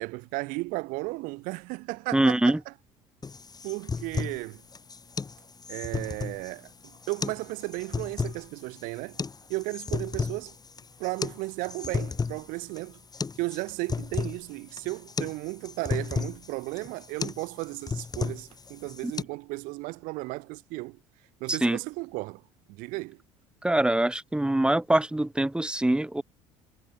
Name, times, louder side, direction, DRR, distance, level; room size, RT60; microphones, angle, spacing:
voice 1, 0.0-2.7 3.6-4.6 5.7-6.7 7.1-9.2 9.5-10.6 11.0-13.0 13.4-21.0 21.4-22.4 22.7-23.2, right 24 dB, 75° right, 2.0 m, -34 dB
voice 2, 2.1-2.6 19.0-19.1 21.5-21.8 23.6-26.2, right 1 dB, 5° right, 1.2 m, -24 dB
sound 1, 3.2-19.2, left 4 dB, 25° left, 4.3 m, -34 dB
hypercardioid pair, 70°, 14 cm